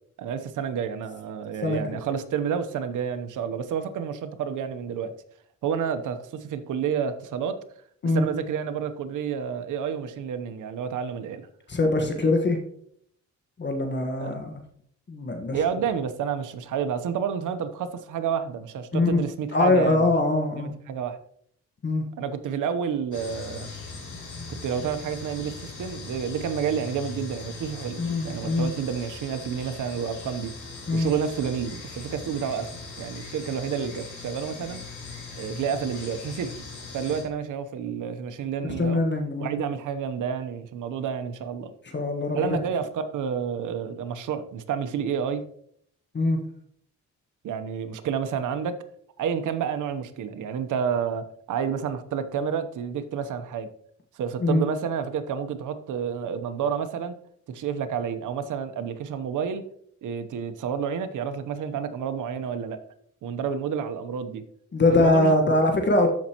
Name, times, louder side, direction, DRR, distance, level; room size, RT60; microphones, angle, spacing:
voice 1, 0.2-5.1 5.6-7.6 8.0-11.5 14.2-14.6 15.5-20.0 20.6-21.2 22.2-23.7 24.5-30.5 30.9-34.8 35.3-36.5 36.9-39.0 39.4-41.7 42.3-45.4 47.4-48.8 49.2-53.7 54.2-57.1 57.5-59.6 60.0-62.8 63.2-64.4 64.9-65.3, right 7 dB, 85° right, 9 dB, 0.9 m, -30 dB
voice 2, 1.6-2.0 8.0-8.3 11.7-12.6 13.6-14.5 15.1-15.6 18.9-19.2 19.5-20.7 21.8-22.0 28.0-28.7 30.9-31.1 38.6-39.6 41.9-42.6 46.1-46.4 54.4-54.6 64.7-66.1, left 2 dB, 35° left, 3 dB, 1.4 m, -23 dB
sound 1, 23.1-37.2, left 4 dB, 75° left, 3.2 m, -40 dB
13.5 x 5.4 x 2.9 m, 0.65 s
cardioid pair, 90°, 30 cm